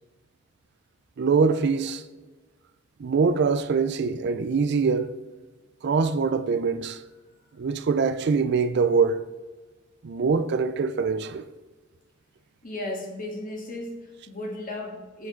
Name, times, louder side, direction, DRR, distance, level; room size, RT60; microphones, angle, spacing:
voice 1, 1.2-2.0 3.0-5.1 5.8-7.0 7.6-9.2 10.0-11.4, right 5 dB, 55° right, 0.4 m, -23 dB
voice 2, 12.6-15.3, left 1 dB, 45° left, 1.6 m, -35 dB
8.2 x 4.9 x 3.8 m
head